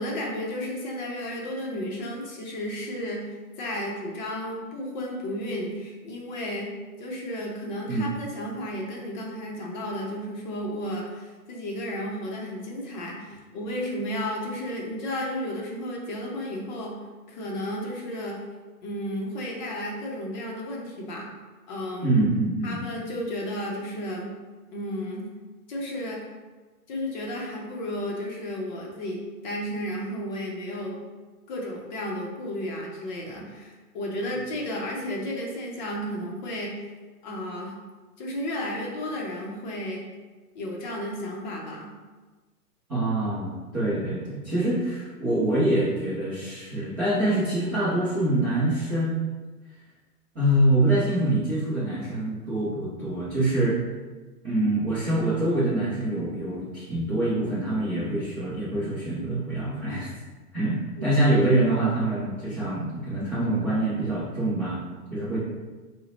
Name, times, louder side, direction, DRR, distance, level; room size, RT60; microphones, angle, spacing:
voice 1, 0.0-6.7 7.0-17.0 17.3-18.4 18.8-21.3 21.7-22.1 22.6-24.3 24.7-25.3 25.7-26.2 26.9-31.0 31.5-36.8 37.2-37.7 38.2-40.1 40.5-41.9 61.0-61.1, left 1 dB, 30° left, -2 dB, 0.6 m, -33 dB
voice 2, 22.0-22.8 42.9-49.2 50.3-53.8 54.4-60.1 60.5-60.8 61.0-64.8 65.1-65.4, right 1 dB, 10° right, -12 dB, 0.4 m, -25 dB
4.0 x 2.1 x 3.9 m, 1.3 s
hypercardioid pair, 135°, 47 cm